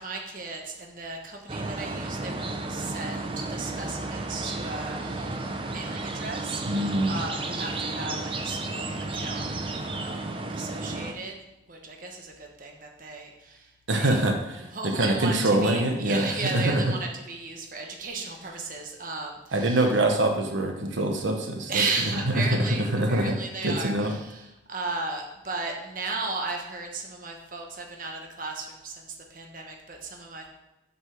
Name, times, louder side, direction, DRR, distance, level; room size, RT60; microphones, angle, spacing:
voice 1, 0.0-9.5 9.8-11.4 11.7-14.3 14.6-20.0 21.7-30.5, right 3 dB, 45° right, 2 dB, 1.1 m, -35 dB
sound 1, 1.5-11.1, right 2 dB, 25° right, 0.7 m, -33 dB
voice 2, 6.7-7.2 13.9-16.8 19.5-21.8 22.4-23.4 23.6-24.1, right 1 dB, 80° right, 4 dB, 1.1 m, -24 dB
7.8 x 5.4 x 6.3 m, 0.93 s
head